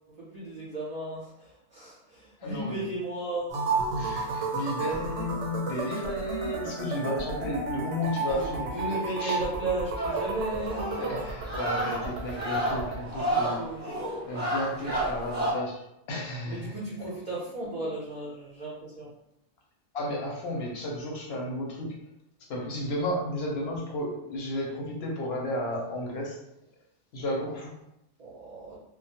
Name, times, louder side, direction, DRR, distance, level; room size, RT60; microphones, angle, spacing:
voice 1, 0.2-3.5 8.4-11.1 11.8-11.9 13.3-14.0 16.4-19.1 28.2-28.8, right 2 dB, 45° right, -7 dB, 0.5 m, -35 dB
voice 2, 2.4-2.9 4.0-8.7 9.2-9.4 11.0-13.7 14.3-16.8 19.9-22.1 22.5-26.5 27.1-27.8, left 1 dB, 65° left, -1 dB, 0.8 m, -33 dB
sound 1, 3.5-13.0, right 3 dB, 80° right, 0.9 m, -33 dB
sound 2, 10.0-15.5, right 1 dB, 10° right, 0.8 m, -31 dB
2.2 x 2.0 x 2.8 m, 0.82 s
omnidirectional pair, 1.3 m